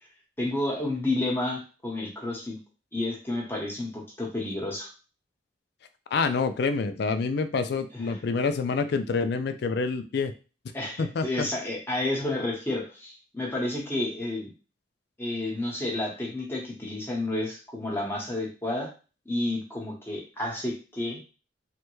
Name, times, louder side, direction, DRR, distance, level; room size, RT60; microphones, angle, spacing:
voice 1, 0.4-2.6 2.9-4.9 7.9-8.2 10.7-14.5 15.2-18.9 19.2-21.2, left 2 dB, 15° left, -2 dB, 1.0 m, -30 dB
voice 2, 6.1-10.3 11.0-11.5, left 4 dB, 60° left, 9 dB, 0.4 m, -27 dB
3.2 x 2.2 x 3.1 m, 0.33 s
head